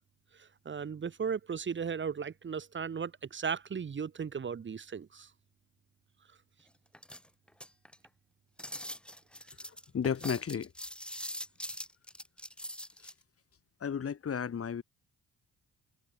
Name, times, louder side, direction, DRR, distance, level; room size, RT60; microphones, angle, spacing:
voice 1, 0.4-5.3, right 6 dB, 40° right, 1.8 m, -36 dB
sound 1, 6.9-8.1 8.6-13.1, left 1 dB, 5° left, 2.4 m, -42 dB
voice 2, 9.9-10.7 13.8-14.8, left 7 dB, 50° left, 7.5 m, -33 dB
cardioid pair, 90°, 30 cm